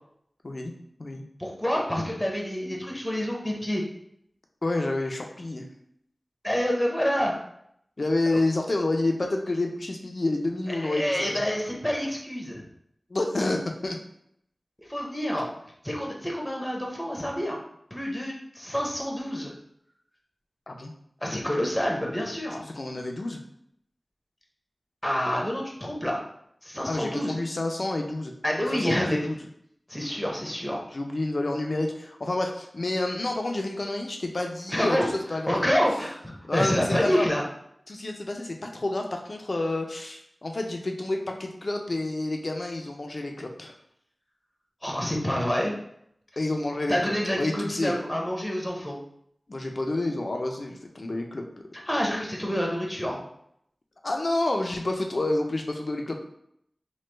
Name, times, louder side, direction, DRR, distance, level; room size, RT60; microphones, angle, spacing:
voice 1, 1.4-3.8 6.4-7.3 10.7-12.6 14.8-15.5 15.8-17.6 17.9-19.5 21.2-22.6 25.0-26.2 26.6-27.4 28.4-29.2 29.9-30.8 34.7-35.1 35.5-37.4 44.8-45.7 46.9-49.0 51.9-53.2, equal, 10° left, -1 dB, 0.7 m, -27 dB
voice 2, 4.6-5.6 8.0-11.4 13.1-14.0 20.7-20.9 22.7-23.4 26.9-28.3 28.7-29.4 30.9-35.0 35.3-35.7 36.4-37.3 37.9-43.7 46.4-47.9 49.5-51.5 54.0-56.2, left 2 dB, 60° left, 3 dB, 0.5 m, -29 dB
3.1 x 2.2 x 3.3 m, 0.73 s
wide cardioid pair, 60°, 0 cm